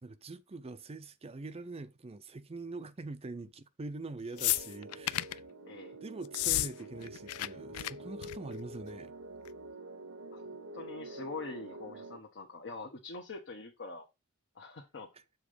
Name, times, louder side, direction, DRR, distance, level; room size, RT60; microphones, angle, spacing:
voice 1, 0.0-5.4 6.0-9.1 15.1-15.2, right 3 dB, 25° right, 0.5 m, -44 dB
sound 1, 4.3-12.2, right 2 dB, 60° right, 0.8 m, -47 dB
sound 2, 4.4-5.4 6.3-6.7 7.0-7.5 7.7-7.9 8.2-8.5 9.5-9.6, left 16 dB, 70° left, 0.3 m, -31 dB
voice 2, 10.3-14.1 14.5-15.1, left 3 dB, 55° left, 1.1 m, -44 dB
7.2 x 3.8 x 5.0 m
head